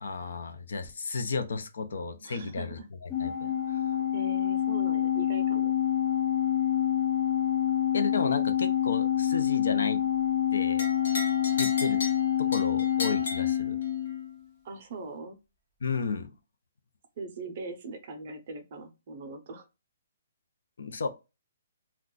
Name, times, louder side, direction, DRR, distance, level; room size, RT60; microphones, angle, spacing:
voice 1, 0.0-4.1 7.9-10.0 10.5-10.9 11.6-12.0 12.4-13.8 15.8-16.3 20.8-21.1, left 4 dB, 75° left, 0.5 m, -33 dB
voice 2, 2.2-2.9 4.1-5.7 14.6-15.4 17.2-19.6, right 3 dB, 35° right, 0.6 m, -41 dB
Organ, 3.1-14.4, left 10 dB, 15° left, 0.4 m, -27 dB
sound 1, 10.8-14.2, left 2 dB, 55° left, 0.9 m, -37 dB
2.4 x 2.2 x 3.7 m
hypercardioid pair, 175°, 0 cm